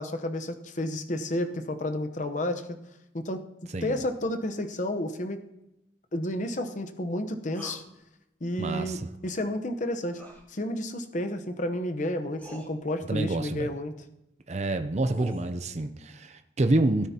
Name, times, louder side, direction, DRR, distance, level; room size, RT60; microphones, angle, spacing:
voice 1, 0.0-2.8 3.1-3.4 3.8-5.4 6.1-7.8 8.4-10.2 10.5-13.9, left 1 dB, 45° left, 8 dB, 0.9 m, -31 dB
sound 1, 7.5-7.8 10.1-10.4 11.7-11.8 12.4-12.7 14.6-15.5, right 1 dB, 10° left, 4.0 m, -43 dB
voice 2, 8.6-9.0 13.1-13.7 14.5-17.1, right 2 dB, 35° right, 8 dB, 0.6 m, -27 dB
17.0 x 9.4 x 2.9 m, 0.90 s
head